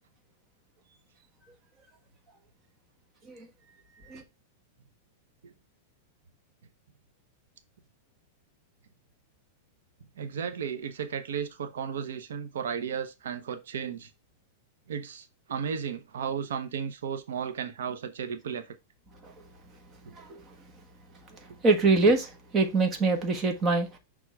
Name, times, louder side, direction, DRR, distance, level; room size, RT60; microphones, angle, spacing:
voice 1, 10.2-14.1 14.9-18.7 20.0-20.1, right 7 dB, 90° right, 0.9 m, -34 dB
voice 2, 20.1-20.4 21.3-24.0, right 3 dB, 20° right, 1.3 m, -25 dB
6.1 x 3.6 x 4.6 m
supercardioid pair, 155°, 0 cm